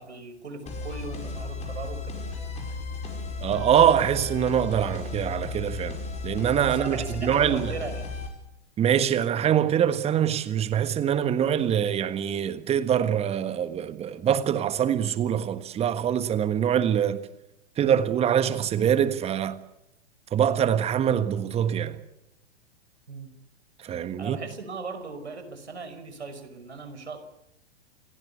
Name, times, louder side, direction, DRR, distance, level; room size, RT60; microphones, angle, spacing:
voice 1, 0.0-2.2 6.7-8.1 23.1-23.3 24.2-27.2, right 4 dB, 70° right, 5.4 m, -38 dB
sound 1, 0.7-8.3, left 4 dB, 20° left, 5.5 m, -34 dB
voice 2, 3.4-7.7 8.8-17.2 17.8-19.6 20.3-22.0 23.8-24.4, right 9 dB, 15° right, 1.5 m, -24 dB
28.5 x 18.0 x 8.3 m
figure-of-eight pair, 105°, 35 cm